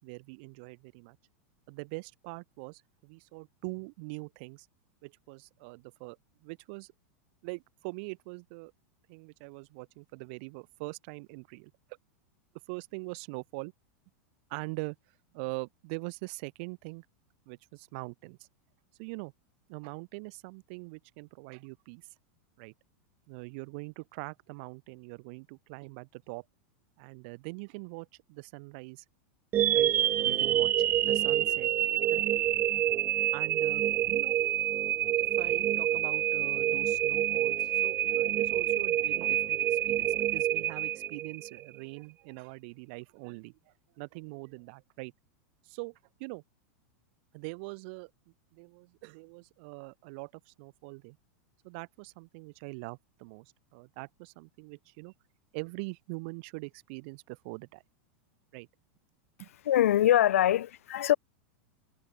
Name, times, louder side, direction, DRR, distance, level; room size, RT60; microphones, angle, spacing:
voice 1, 0.0-1.2 1.7-4.7 5.0-6.2 6.4-6.9 7.4-8.7 9.1-11.7 12.7-13.7 14.5-15.0 15.3-17.0 17.5-18.4 19.0-19.3 19.7-22.1 22.6-22.7 23.3-26.4 27.0-29.0 29.7-29.9 30.2-31.7 32.1-32.2 33.3-34.4 35.2-45.1 45.6-46.4 47.3-48.1 48.5-51.2 51.6-55.1 55.5-57.8 58.5-58.7 59.4-59.5, right 31 dB, 50° right, 6.5 m, -43 dB
sound 1, 29.5-41.6, right 12 dB, 25° right, 2.0 m, -27 dB
voice 2, 59.6-61.1, left 12 dB, 90° left, 3.0 m, -23 dB
supercardioid pair, 150°, 7 cm